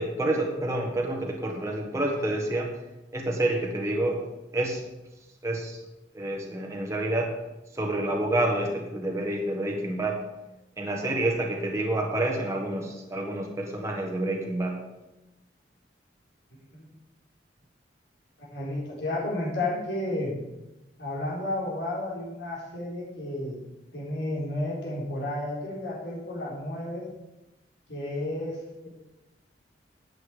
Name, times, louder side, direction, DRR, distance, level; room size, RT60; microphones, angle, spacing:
voice 1, 0.0-2.7 3.1-4.3 4.5-4.8 5.4-5.8 6.1-7.4 7.7-10.2 10.8-14.8, right 1 dB, 15° right, -1 dB, 1.4 m, -28 dB
voice 2, 18.5-20.4 21.0-23.6 23.9-27.1 27.9-28.9, left 1 dB, 75° left, -4 dB, 4.2 m, -32 dB
11.5 x 8.3 x 5.1 m, 0.99 s
head